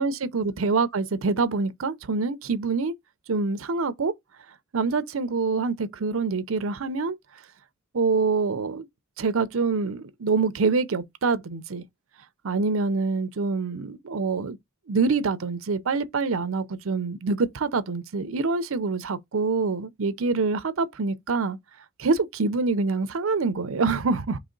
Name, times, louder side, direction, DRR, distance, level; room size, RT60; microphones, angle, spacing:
voice 1, 0.0-2.9 3.3-4.1 4.7-7.2 7.9-8.9 9.2-11.8 12.4-14.6 14.9-21.6 22.0-24.4, right 4 dB, 75° right, 0.6 m, -25 dB
4.0 x 3.0 x 3.8 m
head